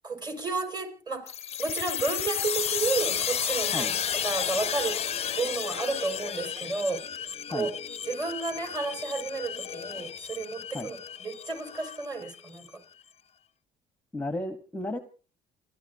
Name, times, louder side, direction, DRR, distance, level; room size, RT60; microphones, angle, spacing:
voice 1, 0.0-1.3 1.6-3.9 4.2-5.0 5.4-7.0 7.5-7.7 8.1-12.7, right 3 dB, 25° right, 6 dB, 5.3 m, -32 dB
sound 1, 1.3-12.7, left 8 dB, 40° left, 0.6 m, -33 dB
voice 2, 14.1-15.0, left 2 dB, 10° left, 7 dB, 1.1 m, -33 dB
29.0 x 12.5 x 2.8 m, 0.37 s
cardioid pair, 110°, 17 cm